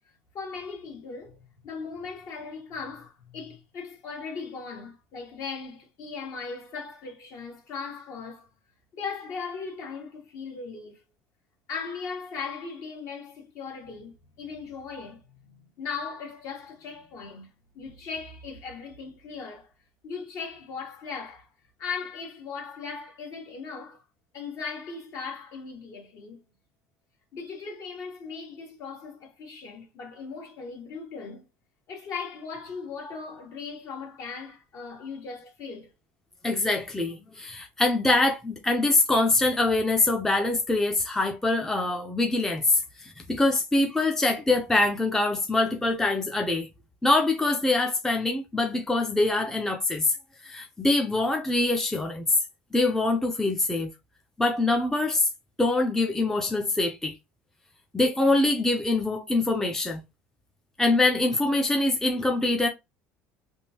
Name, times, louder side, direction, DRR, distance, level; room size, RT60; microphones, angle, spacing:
voice 1, 0.3-8.5 8.9-11.0 11.7-19.7 20.0-21.5 21.8-24.0 24.3-26.4 27.3-31.5 31.9-35.9, left 5 dB, 60° left, 1.4 m, -38 dB
voice 2, 36.4-46.7 47.0-50.2 50.4-52.3 52.7-53.9 54.4-55.3 55.6-57.2 57.9-60.0 60.8-62.7, left 2 dB, 5° left, 0.5 m, -24 dB
3.5 x 2.6 x 2.7 m
supercardioid pair, 110°, 6 cm